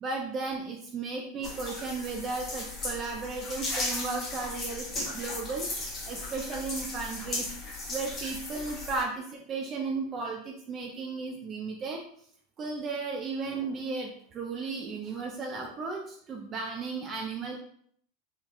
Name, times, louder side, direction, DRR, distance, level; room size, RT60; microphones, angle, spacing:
voice 1, 0.0-12.0 12.6-17.6, right 4 dB, 35° right, 0 dB, 0.4 m, -35 dB
sound 1, 1.4-9.0, left 2 dB, 35° left, 0.9 m, -36 dB
3.2 x 2.2 x 2.5 m, 0.63 s
hypercardioid pair, 90°, 0 cm